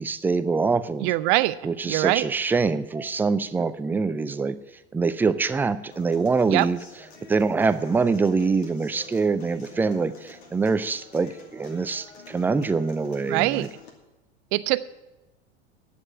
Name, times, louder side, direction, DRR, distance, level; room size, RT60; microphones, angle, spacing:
voice 1, 0.0-1.1 1.6-4.6 4.9-6.8 7.3-13.7, right 4 dB, 5° right, 14 dB, 0.3 m, -24 dB
voice 2, 1.0-1.6 1.9-2.3 6.5-6.7 13.3-13.7 14.5-14.8, right 19 dB, 45° right, 16 dB, 0.6 m, -22 dB
Human voice / Acoustic guitar, 5.9-13.9, left 3 dB, 65° left, 2.6 m, -48 dB
10.5 x 7.7 x 8.6 m, 1.0 s
figure-of-eight pair, 80°, 34 cm